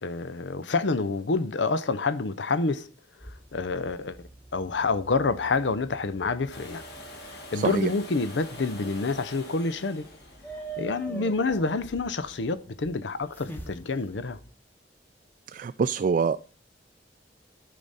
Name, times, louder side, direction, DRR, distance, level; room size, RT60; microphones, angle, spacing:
voice 1, 0.0-2.9 3.2-4.2 4.5-6.8 7.5-10.0 10.8-14.4, left 3 dB, 90° left, 0.7 m, -28 dB
sound 1, 3.2-14.5, right 2 dB, 10° left, 1.0 m, -46 dB
Domestic sounds home sounds, 6.5-12.3 14.2-14.3, left 1 dB, 60° left, 2.6 m, -45 dB
voice 2, 7.5-7.9 11.2-11.3 15.5-16.5, right 5 dB, 45° right, 0.3 m, -26 dB
12.0 x 5.1 x 4.1 m
head